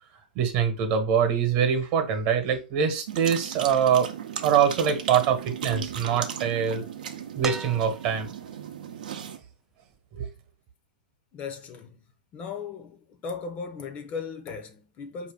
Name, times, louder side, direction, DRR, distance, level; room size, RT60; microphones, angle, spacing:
voice 1, 0.3-4.1 4.4-6.8 7.3-8.3 10.1-10.3, right 7 dB, 45° right, 1.1 m, -24 dB
sound 1, 3.1-9.4, right 8 dB, 70° right, 0.7 m, -36 dB
sound 2, 7.4-8.4 10.0-10.1, right 4 dB, 10° right, 0.3 m, -36 dB
voice 2, 11.3-12.0 12.3-15.3, left 5 dB, 30° left, 0.6 m, -37 dB
4.7 x 2.8 x 3.4 m
hypercardioid pair, 115°, 5 cm